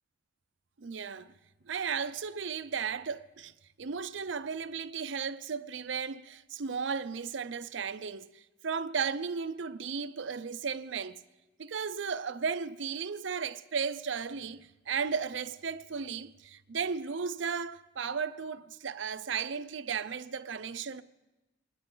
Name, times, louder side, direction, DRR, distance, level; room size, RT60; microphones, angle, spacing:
voice 1, 0.8-1.3 1.6-3.5 3.8-11.2 11.6-21.0, right 6 dB, 70° right, 0.6 m, -35 dB
27.5 x 11.0 x 3.9 m
head